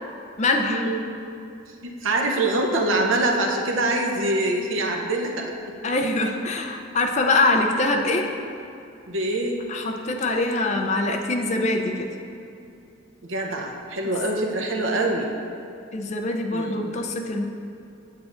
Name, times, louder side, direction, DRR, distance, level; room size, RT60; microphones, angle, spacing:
voice 1, 0.4-0.8 5.8-8.3 9.7-12.2 15.9-17.4, left 2 dB, 35° left, 2 dB, 0.5 m, -23 dB
voice 2, 1.8-5.8 9.1-9.6 13.2-15.3 16.5-16.8, right 2 dB, 80° right, 1 dB, 0.8 m, -24 dB
8.3 x 7.3 x 2.5 m, 2.5 s
head